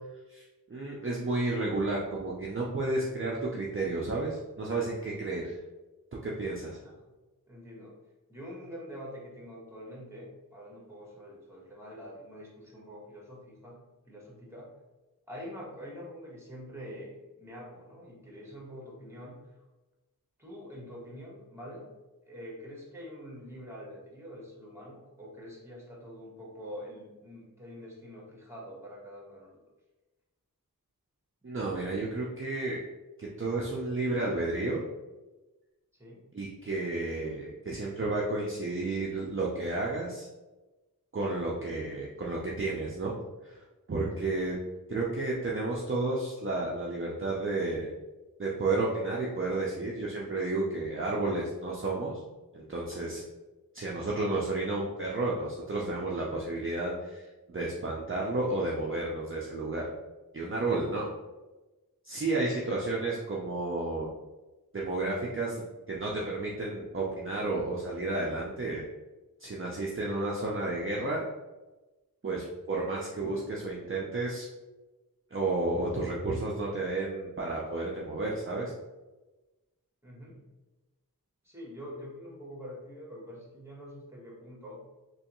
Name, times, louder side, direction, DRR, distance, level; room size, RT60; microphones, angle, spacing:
voice 1, 0.7-5.6 6.2-6.8 31.4-32.8 33.2-34.8 36.3-40.3 41.1-43.2 43.4-44.6 44.9-47.9 48.4-52.2 52.5-53.3 53.7-59.9 60.3-61.1 62.0-64.1 64.7-68.8 69.4-71.2 72.2-74.5 75.3-78.7, right 2 dB, 35° right, -4 dB, 0.6 m, -32 dB
voice 2, 7.5-7.9 8.3-13.8 14.1-14.7 15.3-19.4 20.4-21.8 22.3-29.6 35.9-36.3 41.4-41.7 44.2-44.3 62.4-62.6 80.0-80.4 81.4-84.8, equal, 5° right, -4 dB, 1.3 m, -45 dB
3.3 x 3.0 x 3.0 m, 1.1 s
wide cardioid pair, 45°, 36 cm